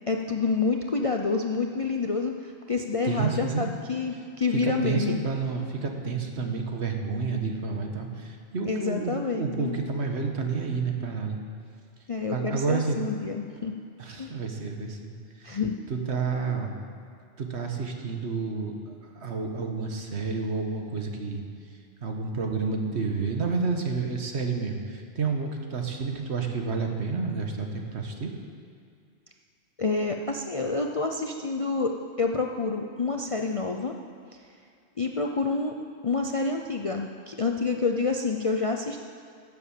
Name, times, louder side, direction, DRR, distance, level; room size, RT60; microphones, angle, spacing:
voice 1, 0.1-5.2 8.6-9.8 12.1-13.7 14.2-14.4 15.4-15.8 29.8-33.9 35.0-35.8 36.0-39.0, left 4 dB, 40° left, 2 dB, 0.5 m, -28 dB
voice 2, 3.0-3.6 4.5-11.4 12.3-13.0 14.0-15.6 15.9-16.7 17.4-21.4 22.0-28.3, right 4 dB, 60° right, 3 dB, 1.5 m, -30 dB
12.5 x 7.6 x 7.7 m, 2.4 s
omnidirectional pair, 1.3 m